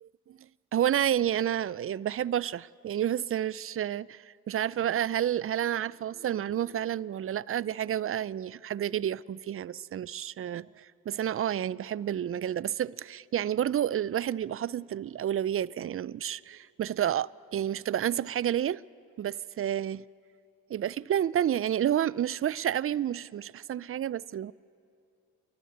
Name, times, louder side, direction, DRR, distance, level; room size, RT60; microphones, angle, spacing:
voice 1, 0.0-0.4 0.7-18.8 19.2-20.0 20.7-24.5, right 10 dB, 40° right, 0.4 m, -30 dB
29.0 x 12.0 x 8.5 m
supercardioid pair, 60°, 36 cm